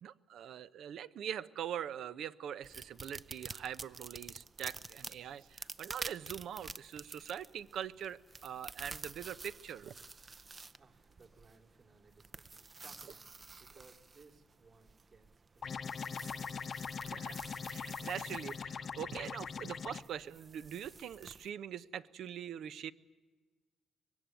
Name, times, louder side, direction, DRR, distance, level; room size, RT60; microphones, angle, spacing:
voice 1, 0.0-9.9 17.0-17.4 17.7-22.9, right 9 dB, 75° right, 0.8 m, -43 dB
sound 1, 2.6-21.5, right 4 dB, 30° right, 0.7 m, -50 dB
voice 2, 10.8-16.7, right 4 dB, 50° right, 3.2 m, -63 dB
sound 2, 15.6-20.0, left 6 dB, 50° left, 0.8 m, -41 dB
23.5 x 20.0 x 9.1 m
cardioid pair, 90°, 0 cm